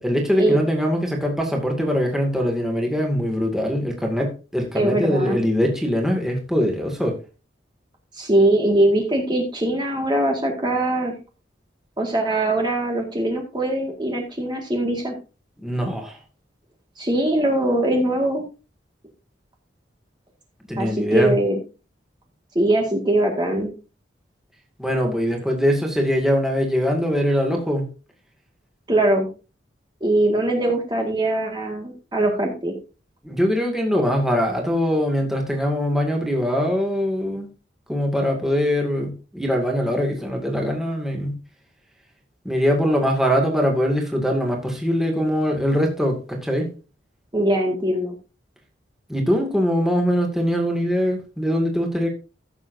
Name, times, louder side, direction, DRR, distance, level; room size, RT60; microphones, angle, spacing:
voice 1, 0.0-7.2 15.6-16.2 20.7-21.4 24.8-27.9 33.2-37.5 37.9-41.3 42.4-46.7 49.1-52.1, equal, ahead, 2.2 m, -22 dB
voice 2, 4.8-5.4 8.1-11.1 12.0-15.2 17.0-18.4 20.8-21.6 22.6-23.7 28.9-29.3 30.0-32.7 47.3-48.1, right 1 dB, 25° right, 1.9 m, -21 dB
15.0 x 7.3 x 2.7 m
head